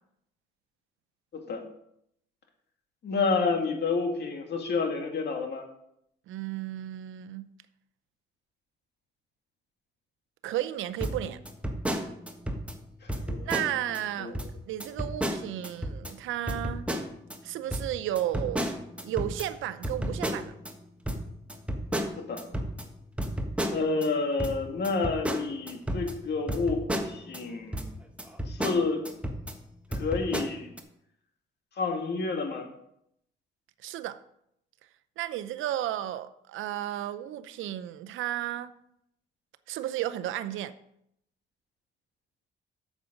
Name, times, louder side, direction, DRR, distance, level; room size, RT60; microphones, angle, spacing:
voice 1, 3.0-5.7 13.0-13.6 14.2-14.5 22.2-22.4 23.7-27.8 28.5-29.0 29.9-30.7 31.8-32.7, left 4 dB, 60° left, 2.3 m, -29 dB
voice 2, 6.3-7.5 10.4-11.4 13.4-14.4 14.7-16.9 17.4-18.6 19.0-20.5 33.8-34.2 35.2-38.7 39.7-40.7, right 12 dB, 85° right, 0.6 m, -33 dB
sound 1, 11.0-12.8 13.1-14.0 14.3-14.5 14.8-16.1 16.5-17.4 17.7-20.7 21.1-24.1 24.4-27.4 27.7-27.9 28.2-29.6 29.9-30.8, equal, 5° right, 1.4 m, -32 dB
8.8 x 7.4 x 5.2 m
cardioid pair, 90°, 20 cm